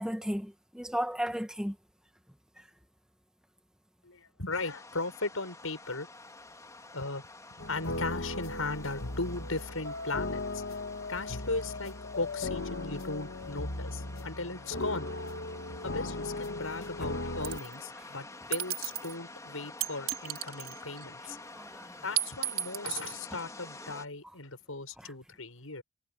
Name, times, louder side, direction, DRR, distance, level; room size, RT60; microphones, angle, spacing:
voice 1, 0.0-1.7 21.3-21.9, equal, 5° right, 1.7 m, -34 dB
voice 2, 4.0-6.1 6.9-7.2 7.5-10.6 11.1-15.1 15.8-21.4 22.0-25.8, left 3 dB, 85° left, 6.7 m, -37 dB
sound 1, 4.5-24.1, left 2 dB, 15° left, 4.0 m, -49 dB
sound 2, 7.6-17.6, left 2 dB, 70° left, 2.3 m, -37 dB
sound 3, 17.4-17.7 18.5-19.1 19.8-21.0 22.2-23.2, right 12 dB, 80° right, 4.6 m, -33 dB
head